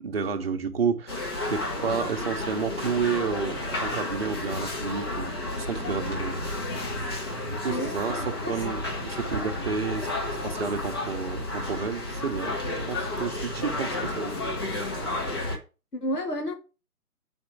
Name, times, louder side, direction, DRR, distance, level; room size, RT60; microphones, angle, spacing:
voice 1, 0.0-6.4 7.6-12.6 12.9-14.5, right 5 dB, 40° right, 1.0 m, -31 dB
sound 1, 1.1-15.6, left 2 dB, 15° left, 0.8 m, -32 dB
voice 2, 7.7-8.5 15.9-16.5, left 1 dB, 80° left, 1.7 m, -31 dB
6.8 x 4.4 x 6.6 m
figure-of-eight pair, 140°, 46 cm